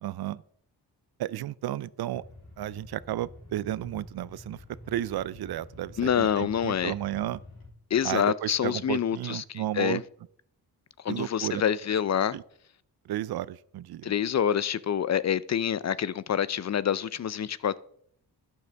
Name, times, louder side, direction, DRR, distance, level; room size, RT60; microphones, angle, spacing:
voice 1, 0.0-0.4 1.2-2.2 2.6-4.6 4.9-7.4 8.0-10.0 11.1-11.6 12.3-12.4 13.1-14.1, right 13 dB, 70° right, 0.5 m, -33 dB
sound 1, 2.1-7.7, left 2 dB, 60° left, 3.4 m, -48 dB
voice 2, 6.0-6.9 7.9-10.0 11.0-12.4 14.0-17.8, left 9 dB, 45° left, 0.5 m, -27 dB
12.0 x 9.4 x 3.4 m
cardioid pair, 75°, 39 cm